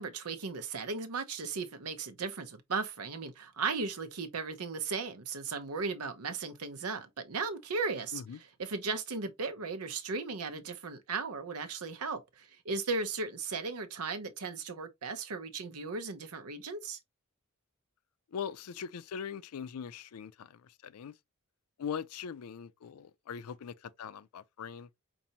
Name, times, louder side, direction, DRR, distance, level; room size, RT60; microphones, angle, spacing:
voice 1, 0.0-8.2 8.6-17.0, right 4 dB, 85° right, 0.8 m, -36 dB
voice 2, 18.3-21.1 21.8-24.9, left 7 dB, 80° left, 0.4 m, -41 dB
5.4 x 2.6 x 2.8 m
head